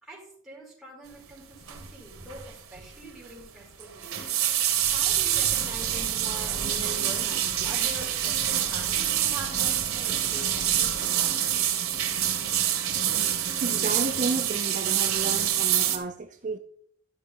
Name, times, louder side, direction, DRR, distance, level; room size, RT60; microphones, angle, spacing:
voice 1, 0.0-4.3 4.8-11.1, right 2 dB, ahead, -6 dB, 4.5 m, -43 dB
sound 1, 1.7-1.9 2.2-2.5 2.8-2.9 3.8-16.0, right 10 dB, 80° right, 1.8 m, -26 dB
sound 2, 4.8-11.0, right 1 dB, 60° right, 1.6 m, -44 dB
voice 2, 13.6-16.6, right 3 dB, 35° right, 7 dB, 0.5 m, -32 dB
12.5 x 5.6 x 5.5 m, 0.62 s
head